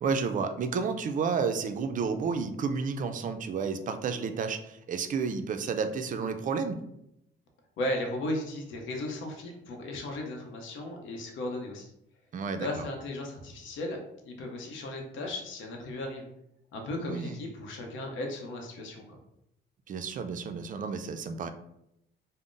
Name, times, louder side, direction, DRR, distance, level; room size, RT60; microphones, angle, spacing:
voice 1, 0.0-6.9 12.3-12.7 17.0-17.4 19.9-21.5, right 5 dB, 40° right, 7 dB, 0.4 m, -31 dB
voice 2, 7.8-11.9 12.6-14.0 14.2-16.3 16.7-19.2, left 1 dB, 75° left, 1 dB, 0.7 m, -36 dB
2.5 x 2.0 x 3.7 m, 0.79 s
cardioid pair, 90°, 20 cm